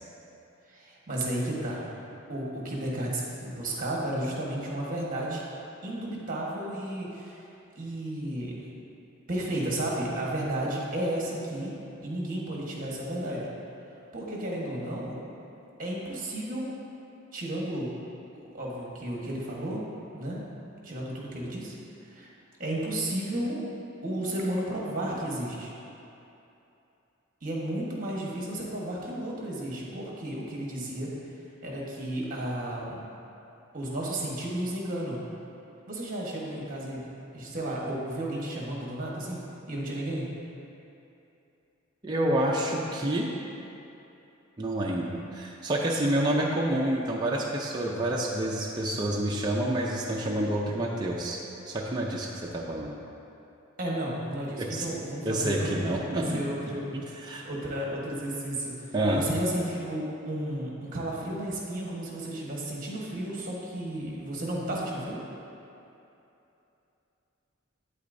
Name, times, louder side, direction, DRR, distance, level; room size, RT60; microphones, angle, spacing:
voice 1, 0.7-1.8 2.3-5.4 5.8-7.4 7.7-8.6 9.3-13.5 14.1-15.2 15.8-16.7 17.3-17.9 18.5-19.8 20.1-21.8 22.1-22.3 22.6-23.6 24.0-25.7 27.4-31.1 31.6-33.0 33.7-35.2 35.9-39.4 39.7-40.2 53.8-65.2, right 1 dB, 40° right, -3 dB, 1.3 m, -33 dB
voice 2, 42.0-43.3 44.6-51.4 51.7-52.9 54.6-54.8 55.2-56.4 57.2-57.5 58.9-59.2, right 1 dB, 20° right, -3 dB, 0.5 m, -28 dB
8.5 x 8.3 x 2.6 m, 2.8 s
head